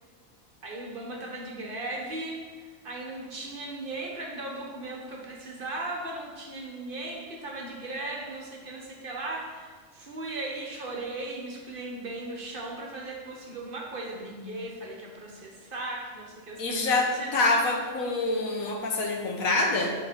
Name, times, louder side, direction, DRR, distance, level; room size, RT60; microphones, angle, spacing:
voice 1, 0.6-17.3, right 2 dB, 45° right, -1 dB, 1.0 m, -37 dB
voice 2, 16.6-19.9, left 2 dB, 85° left, 1 dB, 1.4 m, -26 dB
7.9 x 3.7 x 4.3 m, 1.5 s
omnidirectional pair, 1.4 m